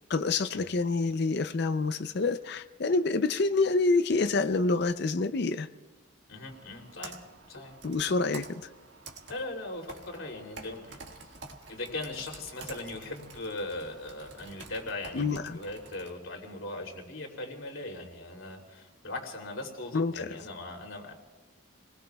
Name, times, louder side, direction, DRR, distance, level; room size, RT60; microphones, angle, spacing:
voice 1, 0.1-5.7 7.8-8.7 15.1-15.6 19.9-20.4, left 3 dB, 55° left, 11 dB, 0.5 m, -27 dB
voice 2, 6.3-7.2 7.5-7.8 9.3-11.4 11.7-21.1, left 2 dB, 80° left, 1 dB, 3.0 m, -39 dB
Computer keyboard, 6.4-16.1, right 3 dB, 60° right, 1.7 m, -49 dB
30.0 x 20.5 x 2.3 m, 1.2 s
head